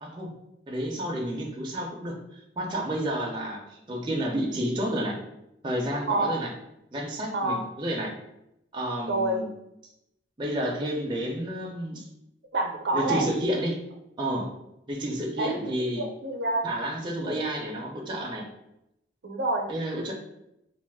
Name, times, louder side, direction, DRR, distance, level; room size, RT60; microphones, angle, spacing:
voice 1, 0.0-0.3 0.7-5.2 5.6-6.5 6.9-8.1 8.7-9.5 10.4-12.1 12.9-13.8 14.2-14.5 14.9-16.0 16.6-18.5 19.7-20.1, right 1 dB, 25° right, -1 dB, 0.4 m, -30 dB
voice 2, 7.3-7.6 9.1-9.4 12.5-13.2 15.4-16.7 17.2-17.5 19.2-19.7, right 2 dB, 80° right, 3 dB, 0.5 m, -28 dB
2.4 x 2.3 x 3.4 m, 0.84 s
head